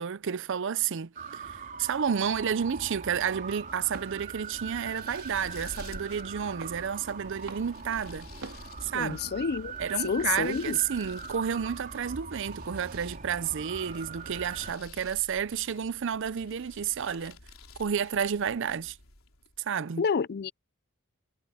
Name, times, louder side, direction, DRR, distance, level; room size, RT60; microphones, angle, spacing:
voice 1, 0.0-8.3 8.8-9.2 9.8-17.4 17.8-19.0 19.6-20.0, right 7 dB, 60° right, 0.5 m, -31 dB
sound 1, 1.1-14.7, right 5 dB, 40° right, 5.0 m, -42 dB
sound 2, 3.7-13.2, right 4 dB, 90° right, 3.4 m, -51 dB
sound 3, 4.1-19.6, left 2 dB, 65° left, 3.9 m, -52 dB
voice 2, 8.9-9.8 10.0-10.8 20.0-20.5, left 6 dB, 45° left, 0.4 m, -29 dB
head